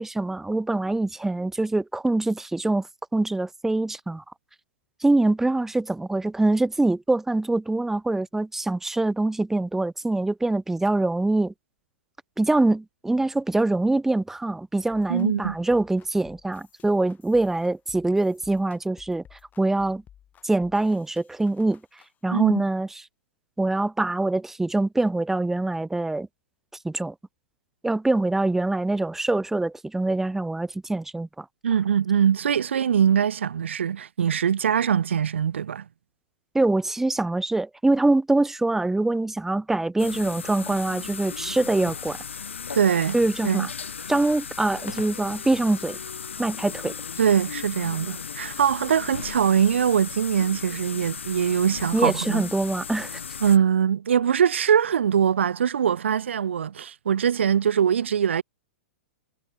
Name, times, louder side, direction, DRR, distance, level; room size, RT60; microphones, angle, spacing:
voice 1, 0.0-2.9 3.1-4.2 5.0-11.5 12.4-20.0 20.4-21.8 22.2-23.0 23.6-26.3 26.8-27.1 27.8-31.4 36.5-42.2 43.1-43.7 44.1-46.0 46.4-46.9 51.9-53.2, right 2 dB, 5° right, 0.9 m, -24 dB
sound 1, 14.9-22.1, left 9 dB, 25° left, 7.7 m, -55 dB
voice 2, 15.1-15.6 22.3-22.5 31.6-35.8 42.7-43.2 43.4-43.7 47.2-52.4 53.4-58.4, right 8 dB, 75° right, 0.6 m, -22 dB
sound 2, 40.0-53.6, left 6 dB, 80° left, 6.3 m, -36 dB
hypercardioid pair, 110°, 6 cm